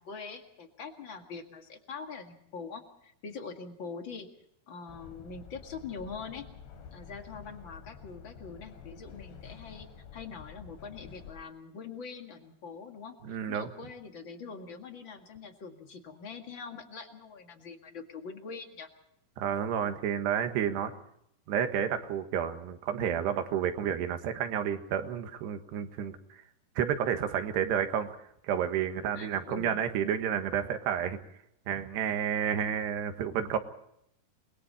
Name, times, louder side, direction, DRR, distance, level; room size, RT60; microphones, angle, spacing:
voice 1, 0.0-4.3 4.7-6.5 6.9-18.9 29.1-29.9, left 5 dB, 40° left, 5 dB, 1.9 m, -43 dB
sound 1, 4.9-11.3, left 7 dB, 85° left, 5.0 m, -49 dB
voice 2, 13.2-13.7 19.4-20.9 21.5-26.2 26.8-28.1 28.4-31.2 31.7-33.6, right 8 dB, 85° right, 7 dB, 3.6 m, -30 dB
29.0 x 21.5 x 4.2 m, 0.75 s
omnidirectional pair, 4.7 m